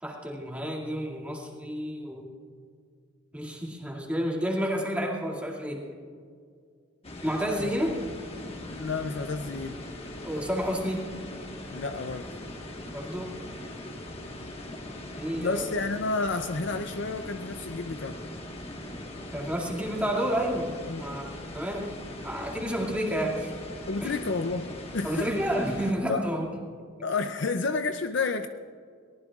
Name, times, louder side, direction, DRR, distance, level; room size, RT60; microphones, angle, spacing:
voice 1, 0.0-2.3 3.3-5.8 7.2-8.0 10.2-11.1 12.9-13.4 15.2-15.6 19.3-22.0 22.2-23.5 24.0-24.2 25.0-26.5, equal, 5° right, -3 dB, 2.2 m, -30 dB
sound 1, 7.0-25.9, left 1 dB, 30° left, 1.5 m, -40 dB
voice 2, 8.7-9.8 11.7-12.3 15.4-18.2 20.9-21.0 23.9-25.3 26.1-26.2 27.0-28.5, left 3 dB, 55° left, 7 dB, 0.5 m, -30 dB
23.0 x 18.5 x 2.4 m, 2.1 s
head